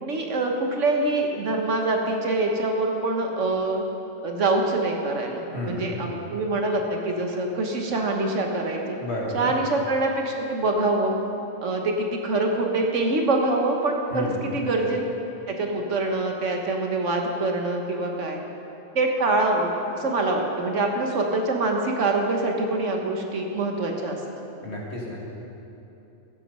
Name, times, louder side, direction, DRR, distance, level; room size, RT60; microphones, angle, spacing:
voice 1, 0.0-3.8 4.2-9.0 9.3-11.1 11.6-15.0 15.5-18.4 18.9-24.2, right 2 dB, 60° right, 2 dB, 1.4 m, -25 dB
voice 2, 5.5-6.0 9.0-9.5 14.1-14.6 24.6-25.2, left 1 dB, 50° left, -3 dB, 2.1 m, -32 dB
15.0 x 7.6 x 5.5 m, 2.9 s
omnidirectional pair, 1.4 m